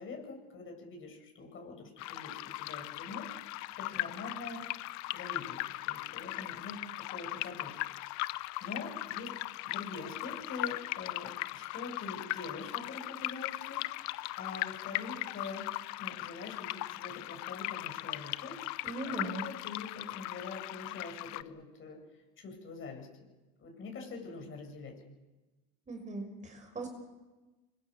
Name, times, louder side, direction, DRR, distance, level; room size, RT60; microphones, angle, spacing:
voice 1, 0.0-3.3 3.8-4.7 5.1-7.8 8.6-9.3 9.6-13.8 14.4-15.7 16.0-18.6 19.1-22.0 22.4-23.3 23.6-25.0, left 4 dB, 45° left, 2 dB, 8.0 m, -44 dB
sound 1, 2.0-21.4, left 19 dB, 70° left, 0.9 m, -39 dB
voice 2, 18.8-19.4 25.9-27.0, right 2 dB, 25° right, 5 dB, 5.9 m, -39 dB
25.5 x 22.5 x 7.0 m, 1.1 s
supercardioid pair, 110°, 29 cm